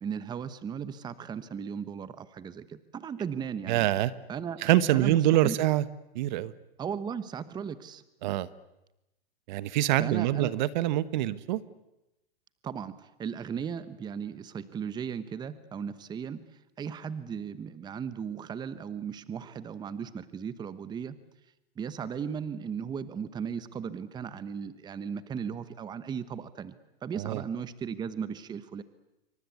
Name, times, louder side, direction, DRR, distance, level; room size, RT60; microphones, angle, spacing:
voice 1, 0.0-3.9 4.3-4.6 4.9-5.6 6.8-8.0 10.0-10.5 12.6-16.4 16.8-21.2 21.8-26.7 27.0-28.8, right 7 dB, 15° right, 14 dB, 1.0 m, -36 dB
voice 2, 3.7-4.1 4.6-5.9 6.1-6.5 8.2-8.5 9.5-11.6 27.1-27.4, right 14 dB, 50° right, 17 dB, 1.2 m, -25 dB
27.5 x 24.5 x 8.4 m, 0.92 s
hypercardioid pair, 135°, 30 cm